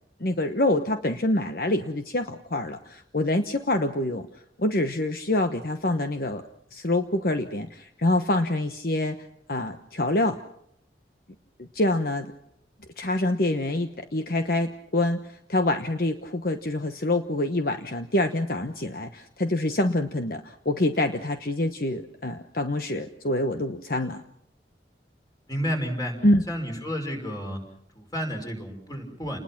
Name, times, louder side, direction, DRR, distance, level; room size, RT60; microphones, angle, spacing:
voice 1, 0.2-4.3 4.6-6.4 6.7-9.2 9.5-10.4 11.6-12.3 13.0-24.2 26.2-26.4, left 1 dB, 55° left, 7 dB, 1.1 m, -26 dB
voice 2, 25.5-26.2 26.5-27.6 27.9-29.4, equal, 20° left, 3 dB, 5.4 m, -31 dB
29.5 x 20.5 x 6.0 m, 0.70 s
head